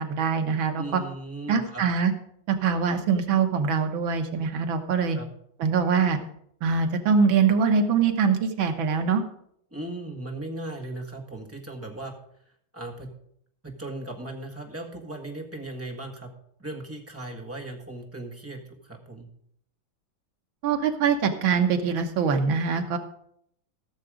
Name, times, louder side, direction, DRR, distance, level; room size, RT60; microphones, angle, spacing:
voice 1, 0.0-1.0 1.5-2.1 2.5-5.2 5.6-6.2 6.6-9.2 20.6-23.0, right 6 dB, 80° right, 6 dB, 1.9 m, -23 dB
voice 2, 0.7-1.8 5.1-5.3 9.7-12.1 12.7-13.1 13.6-16.3 16.6-19.3, right 2 dB, 10° right, 0 dB, 1.4 m, -37 dB
15.0 x 6.9 x 5.0 m, 0.70 s
omnidirectional pair, 2.1 m